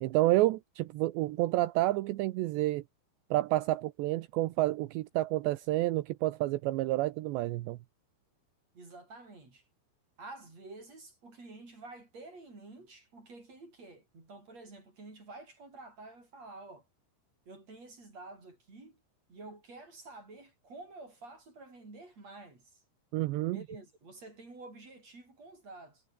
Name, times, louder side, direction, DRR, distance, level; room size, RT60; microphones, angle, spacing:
voice 1, 0.0-2.8 3.3-7.8 23.1-23.6, right 17 dB, 80° right, 2.9 m, -29 dB
voice 2, 8.7-9.7 10.2-16.9 17.5-19.0 19.3-22.8 23.5-26.0, right 2 dB, 35° right, 8.3 m, -50 dB
omnidirectional pair, 5.4 m